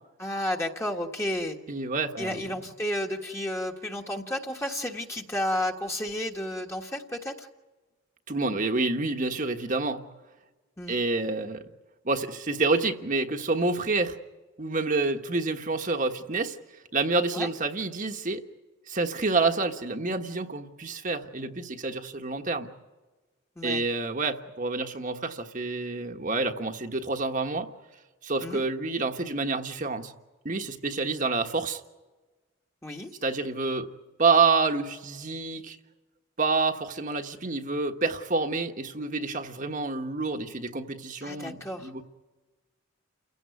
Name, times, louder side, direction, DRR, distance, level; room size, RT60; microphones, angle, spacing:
voice 1, 0.2-1.6 2.2-7.5 10.8-10.9 17.3-17.5 23.6-23.8 28.4-28.6 32.8-33.1 41.2-41.9, left 1 dB, 15° left, 1 dB, 1.5 m, -32 dB
voice 2, 1.7-2.4 8.3-10.0 10.9-11.6 12.0-14.2 14.6-16.6 16.9-18.4 18.9-22.7 23.6-27.7 28.2-30.1 30.4-31.8 33.2-33.9 34.2-35.8 36.4-42.0, right 3 dB, 40° right, 5 dB, 1.4 m, -28 dB
29.5 x 16.5 x 9.4 m, 1.2 s
head